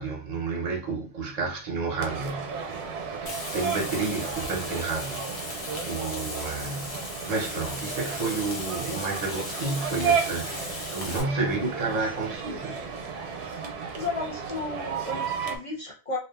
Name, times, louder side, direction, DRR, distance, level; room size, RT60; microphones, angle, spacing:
voice 1, 0.0-12.8, right 3 dB, 45° right, 0.6 m, -31 dB
sound 1, 2.0-15.6, right 6 dB, 85° right, 0.8 m, -33 dB
Frying (food), 3.3-11.2, left 3 dB, 85° left, 1.1 m, -38 dB
voice 2, 13.9-16.2, left 3 dB, 35° left, 0.6 m, -33 dB
2.5 x 2.3 x 2.3 m
omnidirectional pair, 1.1 m